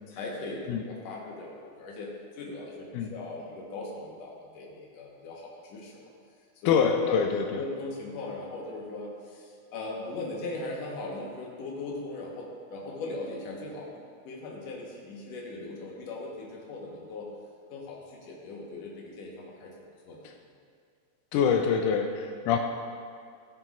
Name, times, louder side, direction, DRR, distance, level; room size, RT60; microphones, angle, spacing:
voice 1, 0.1-6.0 6.6-17.3 17.7-19.7 20.1-20.2, left 2 dB, 60° left, -2 dB, 2.3 m, -39 dB
voice 2, 6.7-7.6 21.3-22.6, left 6 dB, 85° left, 4 dB, 2.1 m, -25 dB
15.0 x 6.9 x 2.5 m, 2.3 s
omnidirectional pair, 3.6 m